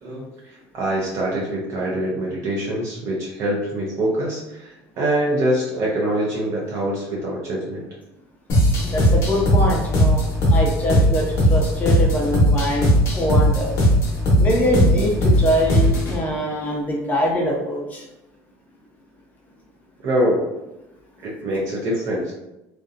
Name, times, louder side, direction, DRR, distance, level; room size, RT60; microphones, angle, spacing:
voice 1, 0.0-7.8 20.0-20.5 21.2-22.3, right 1 dB, 45° right, -4 dB, 0.5 m, -24 dB
sound 1, 8.5-16.2, equal, 45° left, 0.8 m, -18 dB
voice 2, 8.8-10.2 10.5-12.9 13.1-13.7 14.4-18.0, equal, 25° left, -2 dB, 0.4 m, -23 dB
2.6 x 2.1 x 2.5 m, 0.93 s
cardioid pair, 145°, 7 cm